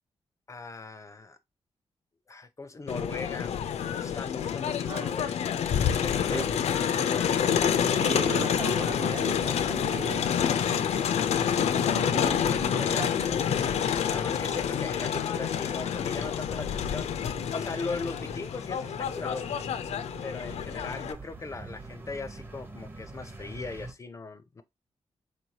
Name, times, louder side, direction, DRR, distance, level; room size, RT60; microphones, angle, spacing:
voice 1, 0.5-1.4 2.3-5.4 5.9-6.4 6.8-7.7 12.8-13.5 14.1-17.1 17.5-19.7 20.2-24.6, left 3 dB, 30° left, 0.4 m, -39 dB
Crowd, 2.9-21.1, left 8 dB, 85° left, 0.4 m, -28 dB
voice 2, 4.9-5.3 6.3-6.6 8.0-10.3 12.1-13.2, right 4 dB, 65° right, 1.0 m, -37 dB
sound 1, 5.8-23.9, right 2 dB, 20° right, 0.7 m, -44 dB
4.1 x 3.2 x 2.8 m
wide cardioid pair, 140°, 11 cm